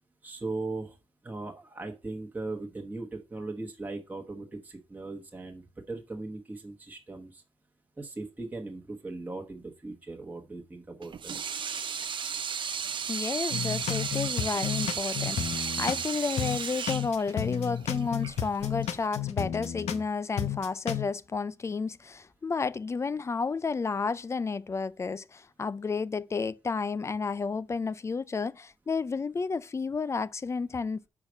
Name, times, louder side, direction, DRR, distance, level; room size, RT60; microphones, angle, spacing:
voice 1, 0.2-1.0 1.2-7.4 8.0-11.3, right 2 dB, 15° right, 1.1 m, -38 dB
Water tap faucet / Sink (filling or washing), 11.0-19.1, right 7 dB, 50° right, 0.6 m, -34 dB
voice 2, 13.0-31.0, left 4 dB, 25° left, 0.3 m, -31 dB
sound 1, 13.5-16.1 16.4-20.1 20.4-21.0, left 9 dB, 90° left, 0.9 m, -32 dB
5.6 x 4.9 x 6.2 m
wide cardioid pair, 135°, 11 cm